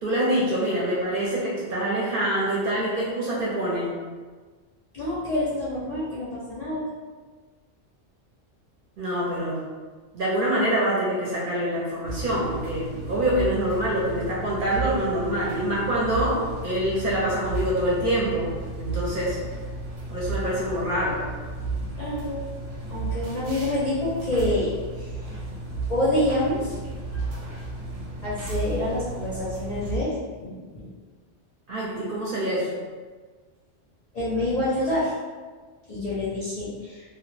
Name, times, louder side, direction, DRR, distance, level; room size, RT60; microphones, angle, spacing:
voice 1, 0.0-3.9 9.0-9.6 10.1-18.5 18.8-19.4 20.1-21.2 31.7-32.7, right 1 dB, 55° right, -6 dB, 0.7 m, -25 dB
voice 2, 4.9-6.9 22.0-22.4 22.9-25.1 25.9-26.7 27.1-27.2 28.2-30.1 30.4-30.9 34.1-35.1 35.9-37.0, left 1 dB, 50° left, -9 dB, 0.5 m, -27 dB
sound 1, 12.1-30.0, right 3 dB, 90° right, 1.0 m, -34 dB
2.1 x 2.1 x 3.1 m, 1.4 s
omnidirectional pair, 1.2 m